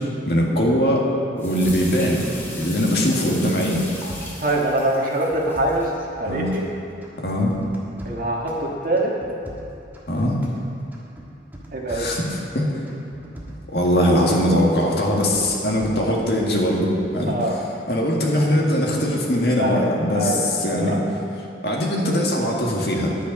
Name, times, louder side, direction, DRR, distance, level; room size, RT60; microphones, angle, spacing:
voice 1, 0.3-1.1 1.3-3.9 6.2-6.5 7.2-7.5 10.1-10.4 11.9-12.8 13.5-17.3 17.9-21.0 21.6-23.1, equal, 60° left, -2 dB, 1.9 m, -21 dB
sound 1, 1.4-5.9, left 1 dB, 15° left, 1.6 m, -37 dB
sound 2, 1.6-2.8 3.1-4.7 5.1-6.7 7.0-8.6 9.0-10.6 10.9-12.5 12.9-14.5 14.8-16.4 16.8-17.2, equal, 10° right, 1.4 m, -41 dB
voice 2, 4.4-6.6 8.1-9.1 11.7-12.1 17.3-17.5 19.6-19.9 20.1-21.0, right 1 dB, 50° right, -2 dB, 1.7 m, -24 dB
10.0 x 9.6 x 5.4 m, 2.5 s
head